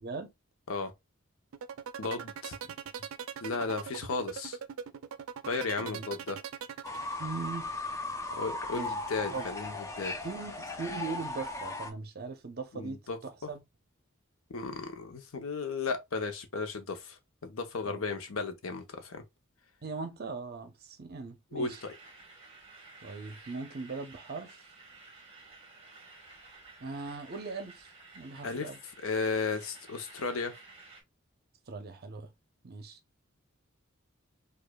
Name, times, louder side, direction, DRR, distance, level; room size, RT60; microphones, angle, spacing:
voice 1, 0.0-0.3 2.6-2.7 5.8-6.0 7.2-7.7 8.7-8.9 9.3-9.5 10.2-13.6 17.8-18.0 19.8-21.8 23.0-24.7 26.8-28.8 31.7-32.3 32.6-33.0, right 4 dB, 50° right, 0.7 m, -40 dB
sound 1, 1.5-7.5, right 7 dB, 85° right, 0.4 m, -40 dB
voice 2, 2.0-2.6 3.4-4.6 5.5-6.4 8.4-10.1 12.7-13.2 13.4-13.5 14.5-19.2 21.5-21.7 28.4-28.7 29.0-30.5, left 4 dB, 85° left, 0.8 m, -34 dB
Fowl / Bird, 6.8-11.9, left 2 dB, 15° left, 0.6 m, -37 dB
sound 2, 21.7-31.0, right 3 dB, 30° right, 1.2 m, -53 dB
4.9 x 2.4 x 2.2 m
head